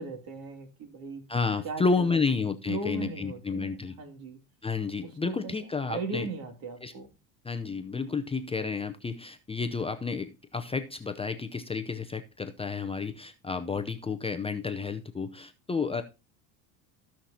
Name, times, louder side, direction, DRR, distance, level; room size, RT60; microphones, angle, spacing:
voice 1, 0.0-1.2 1.6-2.2 2.7-4.4 5.0-7.1, right 3 dB, 55° right, 5 dB, 2.7 m, -38 dB
voice 2, 1.3-4.0 4.6-6.3 6.8-6.9 7.4-16.0, left 4 dB, 15° left, 8 dB, 0.6 m, -31 dB
15.5 x 5.9 x 2.8 m, 0.31 s
supercardioid pair, 110°, 42 cm